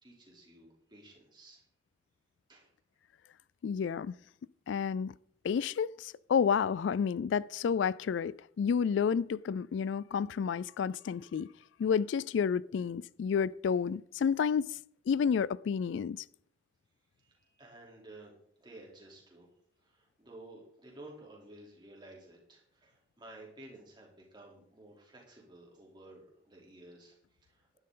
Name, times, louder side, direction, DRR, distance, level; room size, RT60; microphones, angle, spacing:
voice 1, 0.0-1.6 2.5-2.7 17.2-19.5 19.8-27.2 27.4-27.7, right 2 dB, 25° right, 3.3 m, -53 dB
voice 2, 3.6-4.1 4.7-5.1 5.4-11.5 11.8-14.8 15.1-16.2, left 6 dB, 70° left, 0.3 m, -30 dB
12.0 x 11.5 x 3.8 m
head